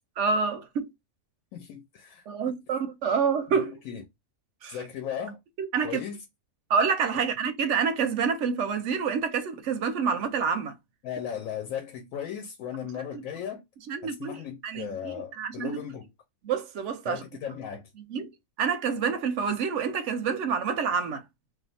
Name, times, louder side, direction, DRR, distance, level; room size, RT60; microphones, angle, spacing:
voice 1, 0.2-0.9 2.3-3.8 4.6-4.8 5.6-6.0 6.7-10.7 13.1-13.2 13.9-15.8 16.4-17.2 18.1-18.3 18.6-21.2, right 6 dB, 70° right, 0.8 m, -28 dB
voice 2, 1.5-2.6 3.6-4.0 4.7-5.4 5.8-6.2 11.0-13.6 14.0-16.1 17.1-17.8, left 8 dB, 80° left, 1.0 m, -36 dB
2.5 x 2.3 x 4.0 m
omnidirectional pair, 1.4 m